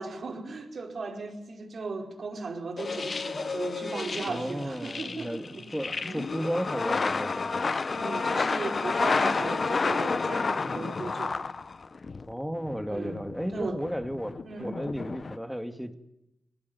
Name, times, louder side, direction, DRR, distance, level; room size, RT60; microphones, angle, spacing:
voice 1, 0.0-5.6 6.0-6.2 7.9-11.5 12.9-13.3 13.5-13.8 14.4-14.9, right 3 dB, 60° right, 5.0 m, -37 dB
sound 1, 2.8-12.3 12.7-15.4, left 4 dB, 50° left, 1.0 m, -30 dB
voice 2, 4.3-7.8 12.3-15.9, equal, ahead, 2.7 m, -34 dB
24.0 x 20.5 x 9.8 m
cardioid pair, 55°, 0 cm